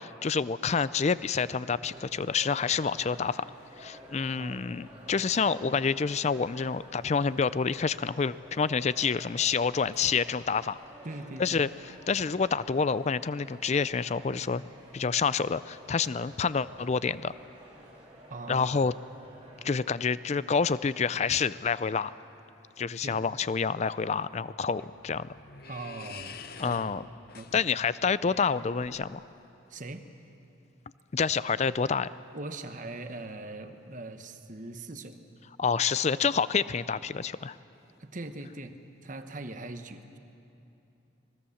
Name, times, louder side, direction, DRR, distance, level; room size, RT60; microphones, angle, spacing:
voice 1, 0.0-3.4 3.8-10.8 11.4-11.7 12.1-14.6 14.9-17.3 18.5-18.9 19.6-22.1 22.8-25.3 26.6-27.0 27.5-29.2 31.1-32.1 35.6-37.6, left 5 dB, 35° left, 17 dB, 0.4 m, -28 dB
sound 1, 1.8-19.7, equal, 25° right, 4.9 m, -52 dB
voice 2, 4.4-4.7 11.0-11.6 18.3-18.9 23.0-23.2 24.6-24.8 25.7-26.8 27.3-27.6 29.7-30.0 32.3-35.2 38.0-38.7 39.0-40.2, right 2 dB, 40° right, 8 dB, 1.1 m, -41 dB
sound 2, 24.5-29.3, left 5 dB, 50° left, 0.9 m, -48 dB
25.0 x 20.0 x 7.2 m, 2.9 s
head